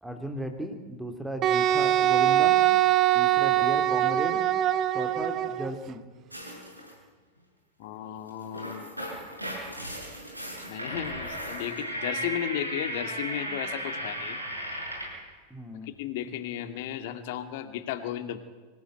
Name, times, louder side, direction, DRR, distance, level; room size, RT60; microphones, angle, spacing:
voice 1, 0.0-2.6 3.1-4.4 4.9-6.0 15.5-15.9, right 1 dB, 5° right, 5 dB, 2.7 m, -36 dB
Wind instrument woodwind instrument, 1.4-5.7, right 12 dB, 35° right, 1.0 m, -23 dB
sound 1, 6.3-6.9 8.3-15.2, equal, 90° right, 6.6 m, -36 dB
voice 2, 7.8-8.9 10.7-14.4 15.8-18.4, left 11 dB, 50° left, 9 dB, 2.4 m, -35 dB
25.5 x 17.0 x 9.1 m, 1.4 s
figure-of-eight pair, 90°, 0 cm